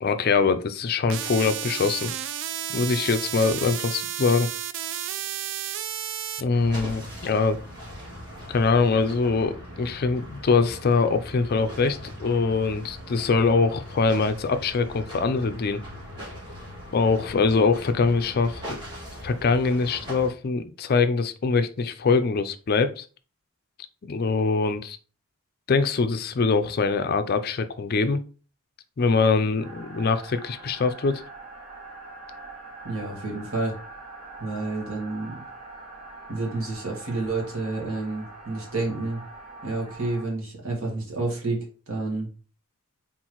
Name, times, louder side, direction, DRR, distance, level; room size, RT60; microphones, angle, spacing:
voice 1, 0.0-2.1 2.7-4.5 6.4-7.6 8.5-15.8 16.9-18.8 19.2-23.1 24.0-25.0 25.7-28.2 29.0-31.2, left 4 dB, 45° left, 10 dB, 0.4 m, -23 dB
sound 1, 1.1-6.4, right 10 dB, 55° right, 0.3 m, -32 dB
sound 2, 6.5-20.3, equal, 20° right, 2.3 m, -40 dB
sound 3, 29.6-40.2, right 2 dB, 40° right, 2.0 m, -43 dB
voice 2, 32.8-33.7 34.4-35.4 36.3-39.2 39.6-42.3, right 2 dB, 70° right, 0 dB, 1.8 m, -29 dB
4.4 x 3.9 x 3.0 m, 0.37 s
head